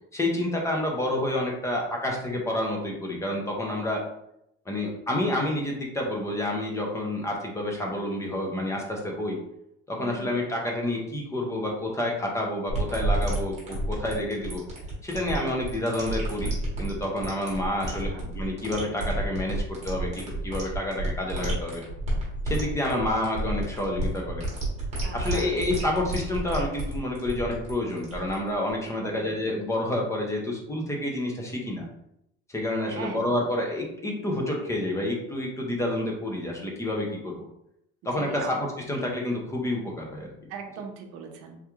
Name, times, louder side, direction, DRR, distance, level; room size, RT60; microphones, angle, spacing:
voice 1, 0.1-4.0 4.7-9.4 9.9-14.6 15.0-16.5 16.8-21.8 22.5-24.4 25.1-31.8 32.5-37.5 38.0-40.3, left 1 dB, 10° left, 0 dB, 0.3 m, -29 dB
voice 2, 10.0-10.3 18.0-18.2 25.0-25.5 29.0-29.2 32.9-33.3 38.1-38.5 40.5-41.6, right 6 dB, 50° right, 4 dB, 0.5 m, -40 dB
sound 1, 12.7-28.9, right 1 dB, 20° right, 1.0 m, -30 dB
3.4 x 2.3 x 2.9 m, 0.79 s
cardioid pair, 175°, 31 cm